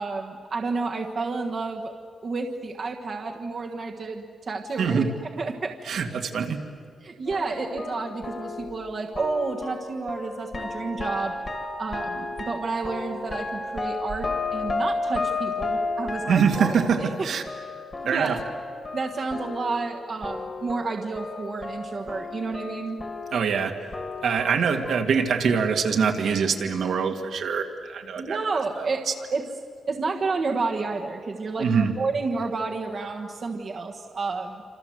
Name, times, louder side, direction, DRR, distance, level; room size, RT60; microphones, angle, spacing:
voice 1, 0.0-1.9 2.2-5.0 5.4-6.0 7.0-11.4 11.8-17.3 18.0-18.5 18.9-23.0 28.1-29.1 29.3-29.4 29.9-34.6, right 4 dB, 40° right, 2 dB, 1.4 m, -30 dB
voice 2, 5.9-6.6 16.3-17.0 17.2-17.4 18.1-18.4 23.3-23.7 24.2-28.4 28.8-29.1 31.6-31.9, right 6 dB, 70° right, 3 dB, 2.1 m, -24 dB
sound 1, 7.3-20.0 20.2-25.0, left 3 dB, 30° left, 2.2 m, -33 dB
27.5 x 26.5 x 7.9 m, 2.3 s
wide cardioid pair, 165°, 0 cm